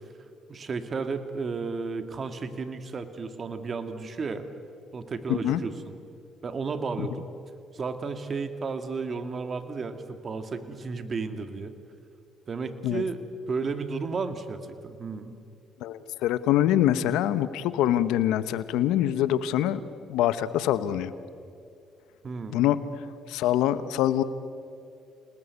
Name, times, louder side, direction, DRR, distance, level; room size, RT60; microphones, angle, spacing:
voice 1, 0.5-4.5 4.9-5.7 6.4-7.3 7.7-11.7 12.5-13.2 13.5-15.3 22.2-22.6, right 4 dB, 45° right, 9 dB, 2.1 m, -33 dB
voice 2, 5.3-5.6 7.0-7.1 12.8-13.0 15.8-19.8 20.1-21.1 22.5-24.2, left 12 dB, 85° left, 14 dB, 1.0 m, -25 dB
28.5 x 19.5 x 8.3 m, 2.5 s
supercardioid pair, 70°, 0 cm